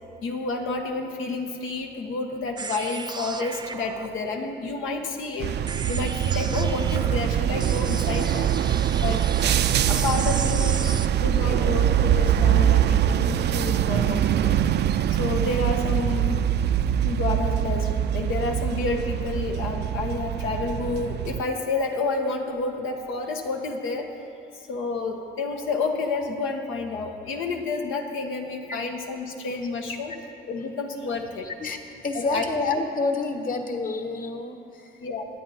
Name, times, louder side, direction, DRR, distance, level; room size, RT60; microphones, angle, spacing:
voice 1, 0.2-5.5 5.9-8.5 9.0-9.3 9.9-10.9 11.2-14.6 15.2-16.4 17.0-24.2 24.7-30.1 30.5-31.5 32.1-32.4 35.0-35.3, left 3 dB, 85° left, 3 dB, 1.4 m, -29 dB
sound 1, 2.6-11.1, right 4 dB, 20° right, 0.6 m, -36 dB
sound 2, 5.4-21.4, right 10 dB, 60° right, 0.5 m, -23 dB
voice 2, 31.4-31.8 32.0-35.0, left 3 dB, 45° left, 5 dB, 1.4 m, -28 dB
20.0 x 8.7 x 4.3 m, 2.5 s
cardioid pair, 90°, 20 cm